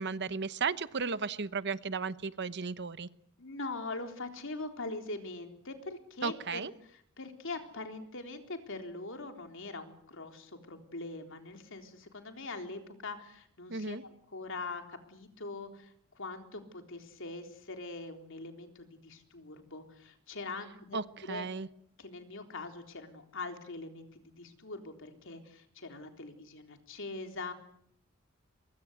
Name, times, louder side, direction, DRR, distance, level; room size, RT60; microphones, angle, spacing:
voice 1, 0.0-3.1 6.2-6.7 13.7-14.0 20.9-21.7, right 5 dB, 55° right, 15 dB, 1.0 m, -35 dB
voice 2, 3.4-6.6 6.9-14.0 14.3-21.5 22.0-27.5, left 3 dB, 65° left, 5 dB, 3.7 m, -42 dB
23.5 x 22.5 x 8.1 m, 0.68 s
head